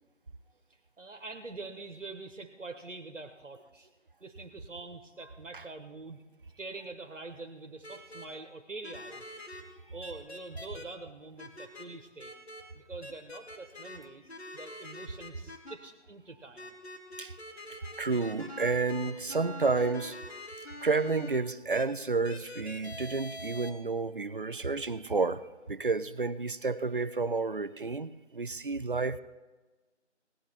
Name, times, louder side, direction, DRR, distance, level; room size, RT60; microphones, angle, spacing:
voice 1, 0.7-3.9 4.2-6.2 6.6-9.2 9.9-12.3 12.7-16.7, right 3 dB, 90° right, 1.4 m, -45 dB
sound 1, 7.8-8.2 8.8-9.6 10.0-10.8 11.4-11.8 12.2-12.6 13.0-14.0 14.3-15.7 16.6-21.3 21.7-21.8 22.2-23.7, left 1 dB, 60° left, 2.3 m, -44 dB
voice 2, 18.0-20.2 20.8-29.2, right 4 dB, 45° right, 0.5 m, -30 dB
18.0 x 11.0 x 4.4 m
figure-of-eight pair, 170°, 36 cm